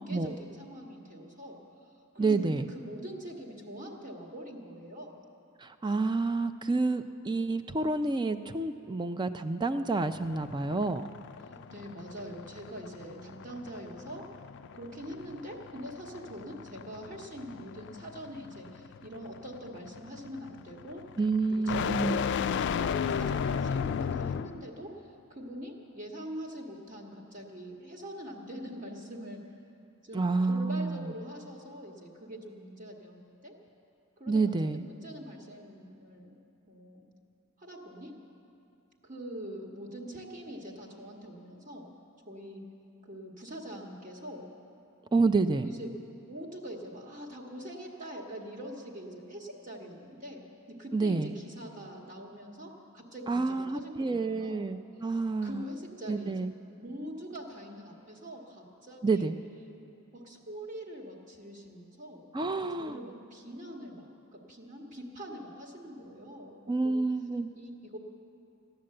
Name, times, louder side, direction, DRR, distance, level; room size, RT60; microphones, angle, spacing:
voice 1, 0.0-1.6 2.1-5.2 11.4-14.3 14.7-21.0 21.5-24.9 25.3-29.4 30.0-33.5 34.2-36.3 36.7-37.1 37.6-38.2 39.0-41.9 42.3-42.6 43.0-44.5 45.6-45.9 46.2-54.6 55.4-56.5 56.8-59.3 60.1-62.2 62.7-66.5 66.8-67.0 67.5-68.0, equal, 35° right, 0 dB, 1.7 m, -43 dB
voice 2, 2.2-2.7 5.6-11.1 21.2-22.2 30.1-31.1 34.3-34.8 45.1-45.7 50.9-51.3 53.3-55.6 56.1-56.5 59.0-59.4 62.3-63.0 66.7-67.5, right 3 dB, 20° right, 10 dB, 0.4 m, -29 dB
sound 1, 10.1-24.7, left 7 dB, 55° left, 0.3 m, -35 dB
15.0 x 10.5 x 7.7 m, 2.6 s
head